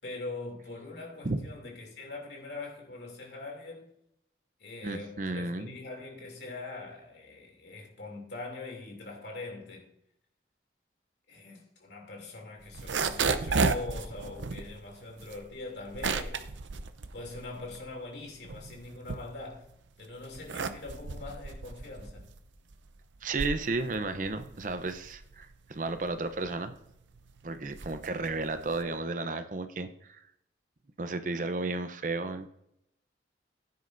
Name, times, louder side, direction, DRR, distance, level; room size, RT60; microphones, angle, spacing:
voice 1, 0.0-3.9 4.6-9.9 11.3-16.5 17.1-19.7 20.0-22.3, left 3 dB, 70° left, 2.8 m, -42 dB
voice 2, 4.8-5.7 23.2-26.7 27.4-30.2 31.0-32.5, right 3 dB, 45° right, 0.7 m, -33 dB
sound 1, 12.6-17.9 18.3-19.7 20.2-29.0, right 4 dB, 90° right, 0.7 m, -34 dB
15.5 x 9.5 x 2.6 m
head